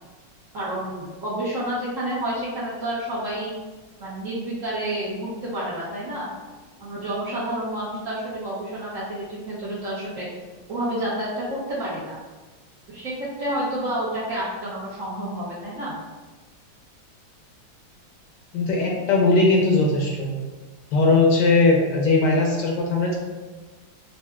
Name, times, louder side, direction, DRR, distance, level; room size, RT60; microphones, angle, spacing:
voice 1, 0.5-3.5 4.0-6.3 6.8-10.3 10.7-12.2 12.9-16.0, right 1 dB, 55° right, -8 dB, 1.0 m, -29 dB
voice 2, 18.5-20.3 20.9-23.1, left 3 dB, 70° left, -1 dB, 1.1 m, -19 dB
5.3 x 2.4 x 2.3 m, 1.3 s
omnidirectional pair, 2.1 m